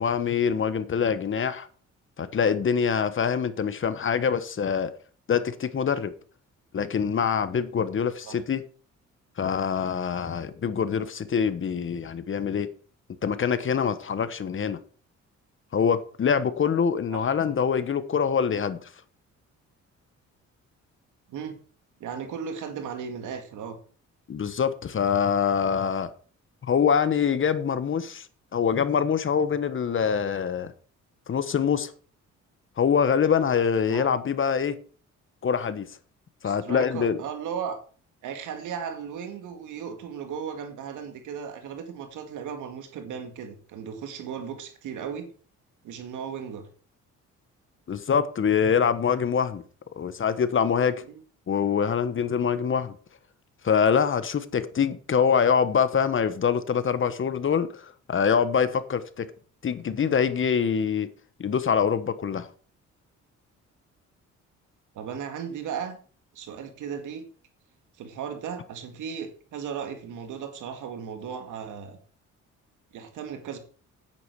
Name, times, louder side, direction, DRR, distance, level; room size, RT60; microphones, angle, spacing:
voice 1, 0.0-1.7 2.2-4.9 5.3-6.1 6.7-8.6 9.4-12.7 13.2-14.8 15.7-18.9 24.3-26.1 26.7-28.3 28.5-30.7 31.3-31.9 32.8-34.8 35.4-35.9 36.4-37.2 47.9-49.6 50.0-51.0 51.5-52.9 53.6-59.3 59.6-61.1 61.4-62.5, left 7 dB, 40° left, 1.2 m, -24 dB
voice 2, 22.0-23.8 33.9-34.1 36.4-37.8 38.2-45.3 45.8-46.7 51.1-51.2 55.2-55.3 65.0-66.0 66.3-67.3 68.0-72.0 72.9-73.6, right 7 dB, 85° right, 2.2 m, -36 dB
9.6 x 8.8 x 4.7 m
cardioid pair, 90°, 30 cm